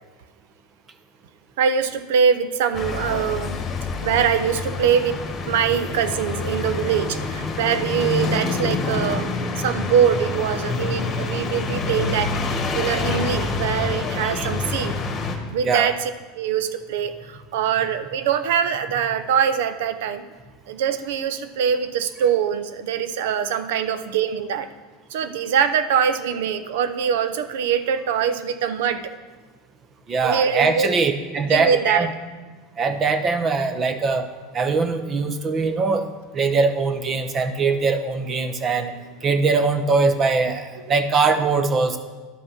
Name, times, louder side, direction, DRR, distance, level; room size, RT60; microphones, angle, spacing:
voice 1, 1.6-3.6 4.0-5.2 5.5-15.0 15.5-16.0 16.4-20.3 20.7-24.7 25.1-29.0 30.2-30.9 31.4-32.1, right 8 dB, 80° right, 11 dB, 0.7 m, -23 dB
sound 1, 2.7-15.4, left 4 dB, 30° left, 1.6 m, -27 dB
voice 2, 15.6-15.9 30.1-32.1 32.8-34.3 34.5-36.0 36.3-38.9 39.2-42.0, right 4 dB, 30° right, 9 dB, 0.8 m, -21 dB
11.5 x 5.4 x 5.9 m, 1.4 s
supercardioid pair, 130°, 0 cm